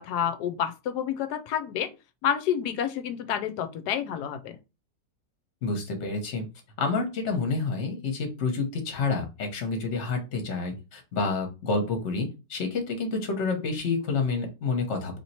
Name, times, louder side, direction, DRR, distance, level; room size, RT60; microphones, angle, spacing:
voice 1, 0.0-1.9 2.2-4.6, left 9 dB, 75° left, 1.1 m, -29 dB
voice 2, 5.6-6.4 6.8-15.2, left 3 dB, 45° left, 1.2 m, -29 dB
3.1 x 2.9 x 4.2 m
omnidirectional pair, 1.9 m